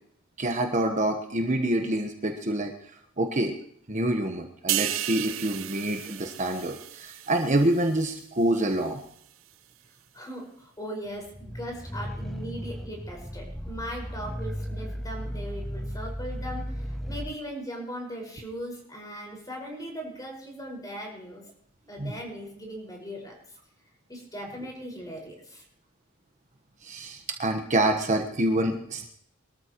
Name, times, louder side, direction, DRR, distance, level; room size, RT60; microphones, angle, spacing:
voice 1, 0.4-2.7 3.2-3.5 3.9-9.0 22.0-22.1 26.8-29.1, right 1 dB, 35° right, 4 dB, 1.2 m, -26 dB
sound 1, 4.7-8.2 8.6-8.8, right 13 dB, 70° right, 0.6 m, -33 dB
voice 2, 10.1-21.5 21.9-23.3 24.1-25.7, equal, 20° left, 0 dB, 5.3 m, -39 dB
sound 2, 11.3-17.4, equal, ahead, 0.5 m, -35 dB
24.0 x 13.5 x 3.1 m, 0.68 s
head